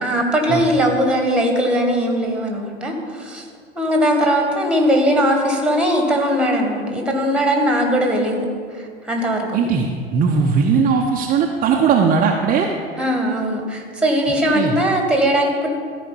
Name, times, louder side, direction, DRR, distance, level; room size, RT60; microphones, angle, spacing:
voice 1, 0.0-3.4 3.8-8.4 8.7-9.6 13.0-15.7, equal, 5° right, 2 dB, 1.8 m, -19 dB
voice 2, 9.5-12.7 14.5-14.8, right 5 dB, 25° right, 0 dB, 0.8 m, -18 dB
13.5 x 5.0 x 7.1 m, 2.1 s
figure-of-eight pair, 80°, 31 cm